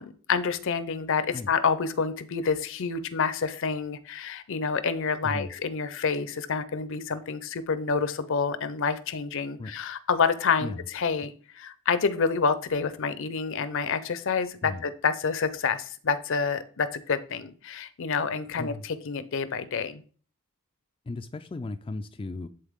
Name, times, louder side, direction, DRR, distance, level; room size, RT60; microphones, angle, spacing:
voice 1, 0.0-20.0, left 5 dB, 65° left, 0.6 m, -28 dB
voice 2, 21.1-22.5, left 2 dB, 25° left, 0.3 m, -35 dB
11.0 x 3.9 x 3.6 m
head